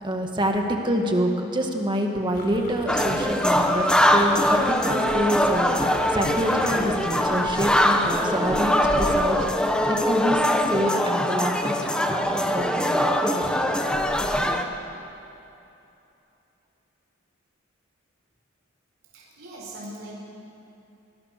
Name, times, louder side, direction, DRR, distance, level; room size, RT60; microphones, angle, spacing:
voice 1, 0.0-9.4 9.9-10.4 10.7-11.8 12.1-13.7, right 1 dB, 25° right, 2 dB, 1.9 m, -27 dB
sound 1, 2.3-8.7, left 1 dB, 45° left, 4.6 m, -41 dB
sound 2, 2.9-14.6, left 1 dB, 5° left, 1.3 m, -22 dB
voice 2, 19.1-20.2, right 1 dB, 70° right, -4 dB, 4.8 m, -40 dB
25.0 x 19.5 x 6.8 m, 2.8 s
head